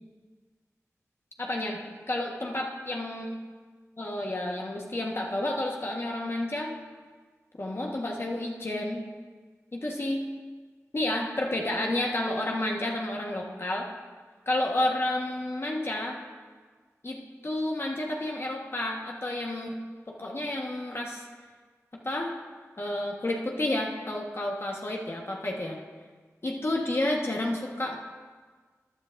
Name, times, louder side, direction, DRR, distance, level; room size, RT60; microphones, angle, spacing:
voice 1, 1.4-1.8 2.1-3.3 4.0-6.7 7.6-9.0 9.7-10.3 10.9-13.9 14.5-16.2 17.0-19.8 20.1-21.2 22.0-22.3 22.8-25.8 26.4-28.0, left 1 dB, 45° left, -1 dB, 1.4 m, -30 dB
14.5 x 9.8 x 2.6 m, 1.5 s
cardioid pair, 45°, 6 cm